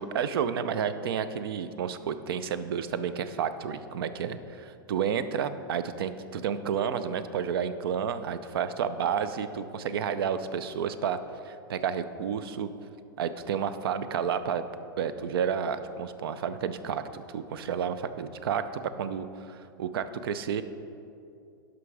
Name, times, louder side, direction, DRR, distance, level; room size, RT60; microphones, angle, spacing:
voice 1, 0.0-11.2 11.4-12.7 13.2-14.6 15.0-20.6, right 7 dB, 85° right, 12 dB, 0.6 m, -31 dB
11.5 x 5.8 x 4.9 m, 2.6 s
supercardioid pair, 175°, 12 cm